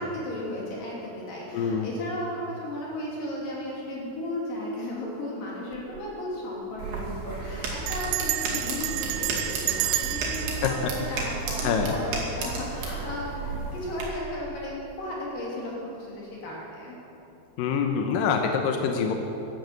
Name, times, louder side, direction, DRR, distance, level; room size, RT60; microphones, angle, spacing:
voice 1, 0.0-17.0, left 1 dB, 55° left, -5 dB, 4.4 m, -35 dB
voice 2, 1.5-1.9 10.6-10.7 11.1-11.3 11.6-11.9 17.6-19.1, left 6 dB, 75° left, 4 dB, 2.0 m, -25 dB
Bell, 5.7-6.1 6.4-6.5 6.7-7.1 7.9-12.0, right 16 dB, 85° right, 2.3 m, -31 dB
sound 1, 6.8-14.0, right 4 dB, 70° right, 4.3 m, -33 dB
12.0 x 12.0 x 8.1 m, 3.0 s
omnidirectional pair, 5.1 m